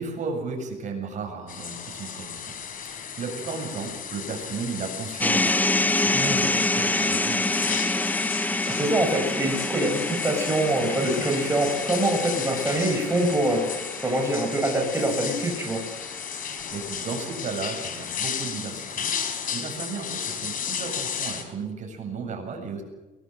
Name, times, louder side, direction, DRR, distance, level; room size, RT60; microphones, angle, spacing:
voice 1, 0.0-2.5 2.9-5.5 5.9-7.8 16.7-22.8, right 4 dB, 45° right, 3 dB, 7.8 m, -34 dB
sound 1, 1.5-21.4, left 7 dB, 55° left, 4.2 m, -34 dB
sound 2, 5.2-17.3, left 2 dB, 10° left, 0.7 m, -28 dB
voice 2, 8.7-13.7 14.0-15.8, right 1 dB, 15° right, 2 dB, 6.0 m, -24 dB
23.0 x 20.5 x 7.8 m, 1.1 s
cardioid pair, 110°, 17 cm